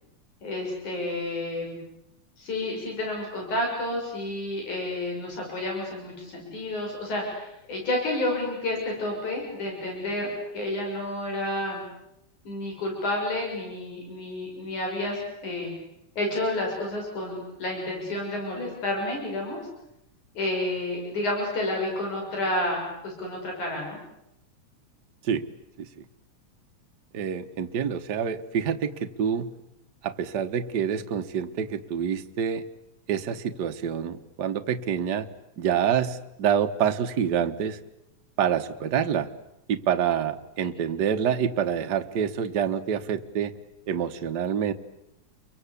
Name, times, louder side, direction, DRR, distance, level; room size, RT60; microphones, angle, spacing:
voice 1, 0.4-1.8 2.4-11.8 12.4-15.7 16.2-19.6 20.3-24.0, left 1 dB, 80° left, 0 dB, 8.0 m, -30 dB
voice 2, 27.1-29.5 30.0-32.6 33.1-35.3 35.6-37.8 38.4-39.3 39.7-43.5 43.9-44.7, right 8 dB, 50° right, 7 dB, 1.3 m, -27 dB
30.0 x 23.5 x 8.4 m, 0.83 s
omnidirectional pair, 3.4 m